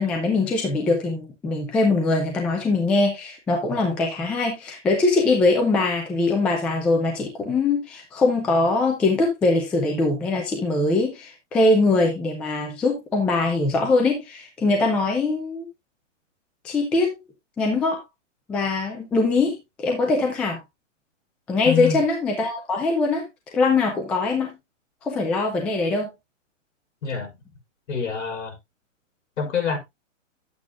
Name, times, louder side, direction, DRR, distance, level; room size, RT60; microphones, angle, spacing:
voice 1, 0.0-15.7 16.6-17.1 17.6-18.0 18.5-20.6 21.5-23.2 23.5-24.6 25.0-26.1, left 3 dB, 5° left, 0.4 m, -22 dB
voice 2, 21.6-22.0 27.0-27.3 27.9-28.6 29.4-29.8, left 6 dB, 65° left, 5.6 m, -26 dB
10.5 x 8.6 x 2.4 m
hypercardioid pair, 150°, 39 cm